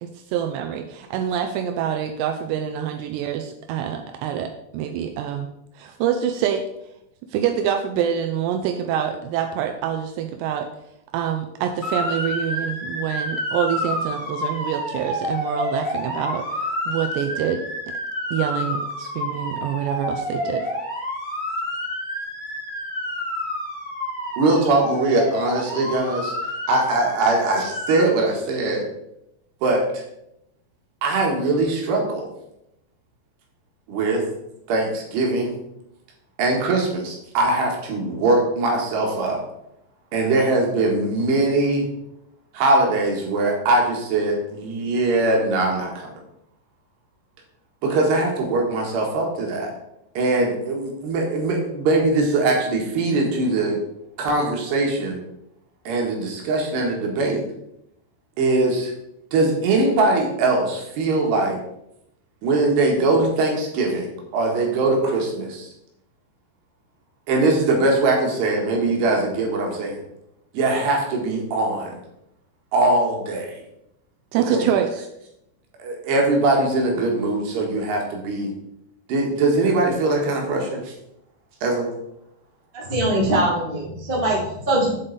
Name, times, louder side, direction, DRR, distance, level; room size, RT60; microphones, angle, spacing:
voice 1, 0.0-5.5 5.8-6.6 7.3-10.7 11.1-17.6 18.3-20.7 74.3-75.1, right 9 dB, 85° right, 5 dB, 2.5 m, -26 dB
Motor vehicle (road) / Siren, 11.8-28.0, left 1 dB, 30° left, 0.8 m, -29 dB
voice 2, 24.4-26.3 26.7-28.9 29.6-30.0 31.0-32.3 33.9-34.2 34.7-35.5 36.4-39.4 40.1-41.9 42.5-46.1 47.8-49.7 50.1-53.8 54.2-55.2 55.8-57.4 58.4-58.9 59.3-61.6 62.4-65.7 67.3-70.0 70.5-72.0 72.7-73.6 74.5-74.6 75.8-78.5 79.1-80.9 81.6-81.9, right 2 dB, 65° right, 0 dB, 3.4 m, -21 dB
voice 3, 82.7-84.9, right 1 dB, 25° right, -6 dB, 1.0 m, -22 dB
8.1 x 7.6 x 4.0 m, 0.82 s
omnidirectional pair, 5.5 m